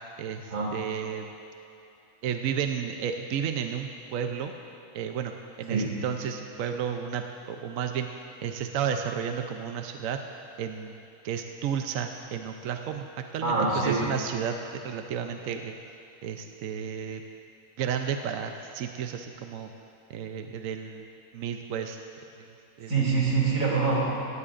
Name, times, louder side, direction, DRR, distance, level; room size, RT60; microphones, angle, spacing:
voice 1, 0.2-1.2 2.2-4.5 4.9-8.1 8.4-10.2 10.6-13.1 13.3-15.8 16.2-17.2 17.8-19.7 20.1-22.0 22.4-22.5 22.8-22.9, right 8 dB, 70° right, 5 dB, 1.0 m, -32 dB
voice 2, 13.4-14.0 22.9-24.0, right 4 dB, 85° right, -4 dB, 3.3 m, -25 dB
18.0 x 15.0 x 2.5 m, 2.8 s
omnidirectional pair, 1.6 m